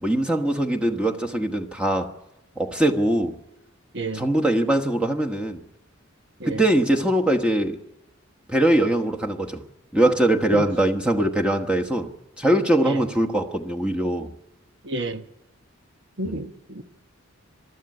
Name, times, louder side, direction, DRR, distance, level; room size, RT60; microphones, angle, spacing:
voice 1, 0.0-2.1 2.6-3.4 4.1-5.6 6.5-7.8 8.5-9.6 9.9-12.1 12.4-14.3 16.3-16.4, right 1 dB, 5° right, 1.1 m, -22 dB
voice 2, 3.9-4.2 6.4-6.6 10.5-10.7 12.8-13.1 14.8-15.2 16.2-16.8, right 2 dB, 60° right, 1.2 m, -30 dB
22.5 x 13.0 x 9.7 m
head